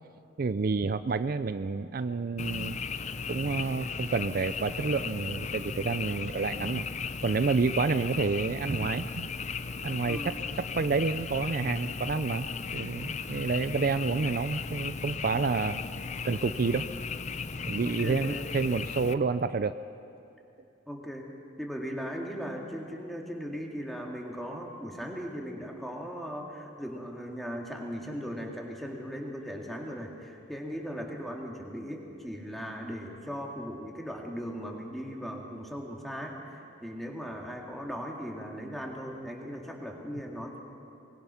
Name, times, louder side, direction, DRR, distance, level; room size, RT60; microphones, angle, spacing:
voice 1, 0.4-2.8 3.3-6.8 7.2-9.3 9.8-12.5 12.7-15.8 16.2-16.9 17.7-19.8, right 4 dB, 50° right, 12 dB, 0.4 m, -29 dB
Frog, 2.4-19.1, left 5 dB, 40° left, 0.6 m, -36 dB
voice 2, 10.1-10.4 17.8-18.6 20.9-21.3 21.6-36.4 36.8-40.6, equal, ahead, -1 dB, 2.2 m, -38 dB
23.5 x 21.0 x 5.8 m, 2.7 s
head